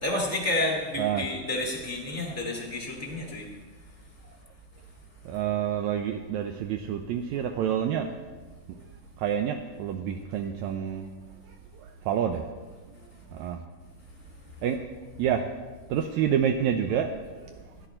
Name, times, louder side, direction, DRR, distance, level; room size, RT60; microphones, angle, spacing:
voice 1, 0.0-3.4, left 2 dB, 15° left, -2 dB, 0.4 m, -30 dB
voice 2, 5.2-8.1 9.2-11.1 11.8-12.4 13.3-13.6 14.6-14.8 15.2-15.4 15.9-17.5, right 9 dB, 85° right, 5 dB, 1.6 m, -28 dB
16.0 x 10.5 x 4.4 m, 1.4 s
omnidirectional pair, 3.9 m